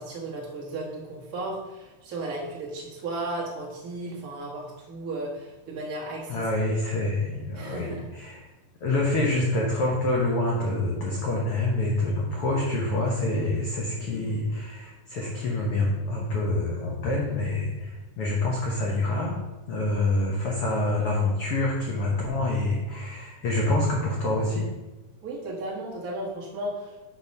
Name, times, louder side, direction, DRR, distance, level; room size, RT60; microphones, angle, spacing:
voice 1, 0.0-6.4 7.5-8.1 25.2-27.0, right 2 dB, 45° right, -4 dB, 1.1 m, -35 dB
voice 2, 6.3-8.4 8.8-19.3 19.7-24.7, left 2 dB, 85° left, -2 dB, 1.2 m, -26 dB
6.7 x 4.1 x 5.4 m, 1.1 s
omnidirectional pair, 4.0 m